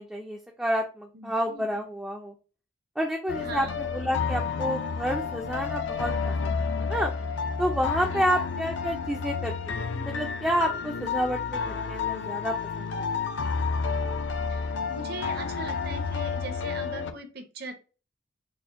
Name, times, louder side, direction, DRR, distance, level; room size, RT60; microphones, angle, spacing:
voice 1, 0.0-2.3 3.0-7.1 7.6-13.1, equal, 5° right, 0 dB, 0.3 m, -30 dB
voice 2, 1.1-1.9 3.4-3.7 8.1-8.3 14.5-17.7, right 2 dB, 50° right, 6 dB, 0.7 m, -40 dB
sound 1, 3.3-17.1, left 5 dB, 60° left, 0.4 m, -30 dB
4.1 x 2.1 x 3.5 m, 0.35 s
head